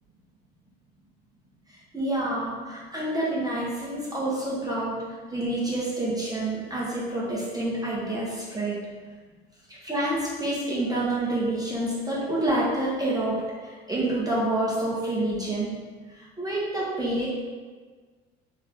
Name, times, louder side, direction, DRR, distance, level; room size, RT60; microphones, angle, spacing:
voice 1, 1.9-5.0 5.3-8.8 9.8-15.7 16.2-17.3, right 1 dB, 10° right, -7 dB, 1.3 m, -28 dB
3.6 x 3.1 x 3.6 m, 1.4 s
hypercardioid pair, 60°, 31 cm